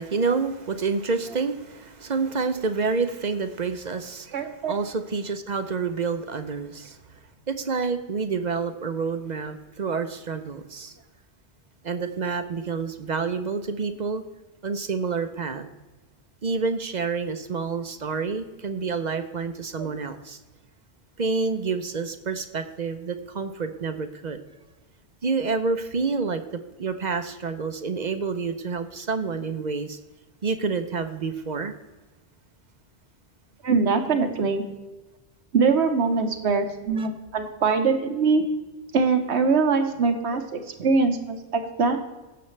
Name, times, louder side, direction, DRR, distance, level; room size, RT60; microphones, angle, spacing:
voice 1, 0.0-7.0 7.5-10.9 11.8-14.2 14.6-15.7 16.4-20.4 21.2-24.4 25.2-26.4 26.8-30.0 30.4-31.8 37.0-37.1, right 4 dB, 50° right, 9 dB, 0.7 m, -28 dB
voice 2, 4.3-4.7 19.8-19.9 33.6-34.6 35.5-38.4 38.9-42.1, right 4 dB, 80° right, 7 dB, 1.3 m, -23 dB
17.0 x 6.9 x 3.2 m, 1.1 s
omnidirectional pair, 1.1 m